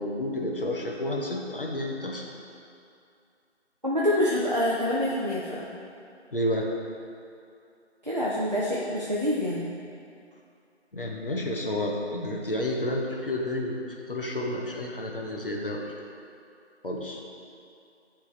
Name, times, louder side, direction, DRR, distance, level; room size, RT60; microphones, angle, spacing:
voice 1, 0.0-2.2 6.3-6.7 10.9-15.8 16.8-17.2, left 1 dB, 50° left, -1 dB, 0.8 m, -30 dB
voice 2, 3.8-5.7 8.0-9.7, left 1 dB, 40° right, -7 dB, 0.5 m, -26 dB
9.3 x 3.4 x 3.2 m, 2.5 s
figure-of-eight pair, 170°, 35 cm